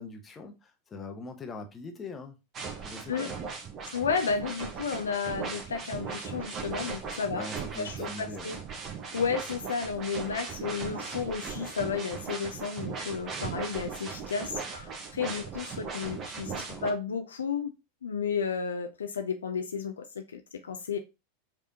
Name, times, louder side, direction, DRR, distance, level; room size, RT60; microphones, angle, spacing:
voice 1, 0.0-2.4 2.8-3.3 7.3-8.6 16.5-16.9, left 3 dB, 20° left, 0.9 m, -42 dB
sound 1, 2.5-16.9, right 5 dB, 30° right, 1.1 m, -38 dB
voice 2, 3.9-7.5 7.8-8.6 9.1-16.5 16.8-17.7 18.0-21.0, left 5 dB, 70° left, 0.5 m, -32 dB
5.0 x 3.4 x 2.7 m
figure-of-eight pair, 85°, 0 cm